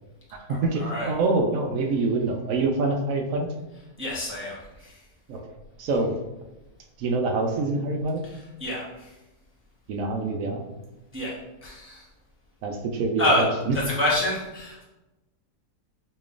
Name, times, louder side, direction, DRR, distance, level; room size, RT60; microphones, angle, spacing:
voice 1, 0.3-3.5 5.3-5.5 5.8-6.1 7.0-8.2 9.9-10.6 12.6-13.7, right 3 dB, 70° right, 3 dB, 0.9 m, -26 dB
voice 2, 4.0-5.0 8.6-9.1 11.1-11.4 11.6-12.0 13.2-13.5 13.9-14.8, left 1 dB, 20° right, -6 dB, 0.3 m, -27 dB
5.0 x 2.9 x 2.4 m, 1.0 s
omnidirectional pair, 1.7 m